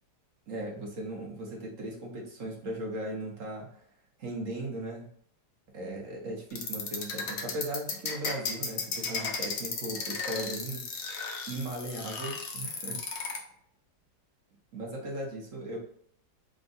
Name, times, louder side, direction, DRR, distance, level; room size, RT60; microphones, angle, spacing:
voice 1, 0.5-3.8 4.2-5.1 5.7-10.8 11.5-13.0 14.7-15.8, right 1 dB, 55° right, -1 dB, 1.1 m, -37 dB
sound 1, 6.5-13.4, left 5 dB, 65° left, 1.0 m, -34 dB
3.6 x 2.3 x 3.9 m, 0.64 s
omnidirectional pair, 1.8 m